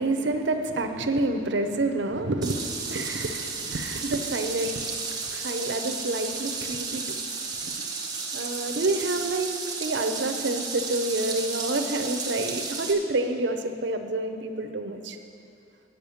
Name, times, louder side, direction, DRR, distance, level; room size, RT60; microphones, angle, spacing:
voice 1, 0.0-7.2 7.6-7.9 8.3-9.5 9.8-15.2, right 2 dB, 75° right, 7 dB, 0.7 m, -28 dB
sound 1, 2.4-12.9, right 4 dB, 20° right, 0.9 m, -33 dB
8.7 x 6.6 x 7.0 m, 2.5 s
head